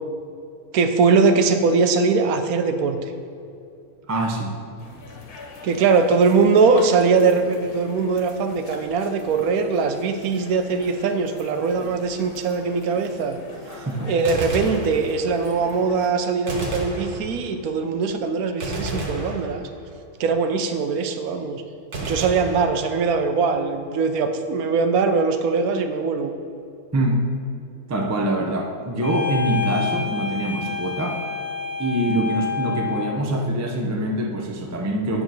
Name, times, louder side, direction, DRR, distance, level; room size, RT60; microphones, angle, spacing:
voice 1, 0.7-3.0 5.6-13.4 14.1-19.7 20.2-21.6 22.0-26.3, right 4 dB, 75° right, 7 dB, 1.1 m, -21 dB
voice 2, 4.1-4.6 13.7-14.2 26.9-27.3 27.9-31.2 31.8-35.2, right 1 dB, 25° right, 2 dB, 0.3 m, -24 dB
sound 1, 4.8-16.1, left 2 dB, 80° left, 1.5 m, -42 dB
Gunshot gunfire, 14.1-15.5 16.5-17.7 18.6-20.0 21.9-23.3, right 1 dB, 55° right, 1.4 m, -31 dB
sound 2, 29.0-33.2, left 6 dB, 60° left, 1.2 m, -28 dB
9.2 x 3.7 x 6.2 m, 2.6 s
omnidirectional pair, 1.6 m